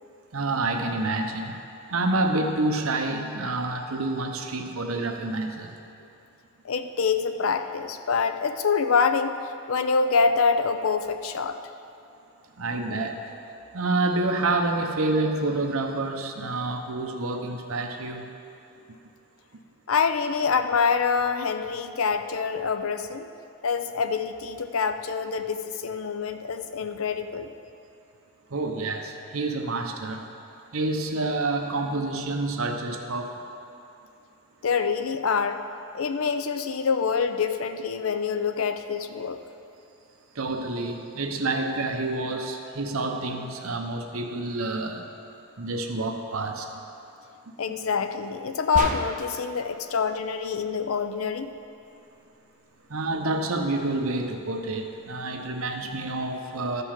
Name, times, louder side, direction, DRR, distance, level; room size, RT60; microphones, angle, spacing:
voice 1, 0.3-1.6 1.9-5.8 12.6-13.2 13.7-18.3 28.5-30.3 30.7-33.4 40.3-45.1 45.6-46.7 52.9-56.8, right 2 dB, 75° right, 4 dB, 0.9 m, -28 dB
voice 2, 6.6-9.4 9.7-11.6 19.9-23.3 23.6-27.5 34.6-35.6 35.9-39.4 47.6-51.5, left 5 dB, 70° left, 8 dB, 0.5 m, -26 dB
sound 1, 48.8-49.5, right 2 dB, 35° right, 0.7 m, -30 dB
13.5 x 5.4 x 5.9 m, 2.7 s
head